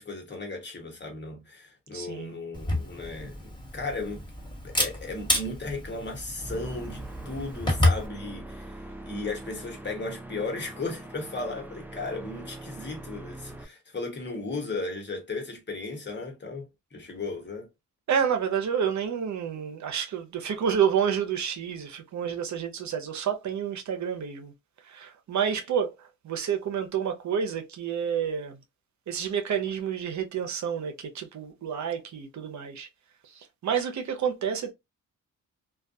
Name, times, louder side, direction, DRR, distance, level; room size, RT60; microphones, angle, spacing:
voice 1, 0.0-4.2 4.6-17.7, left 3 dB, 35° left, 1.2 m, -36 dB
voice 2, 1.9-2.4 18.1-24.5 24.8-28.6 29.1-32.9 33.2-34.7, right 8 dB, 60° right, 0.7 m, -29 dB
Camera, 2.5-8.1, left 1 dB, 15° left, 1.5 m, -29 dB
sound 1, 6.4-13.6, right 1 dB, 5° right, 0.5 m, -43 dB
2.3 x 2.2 x 2.6 m
cardioid pair, 65°, 32 cm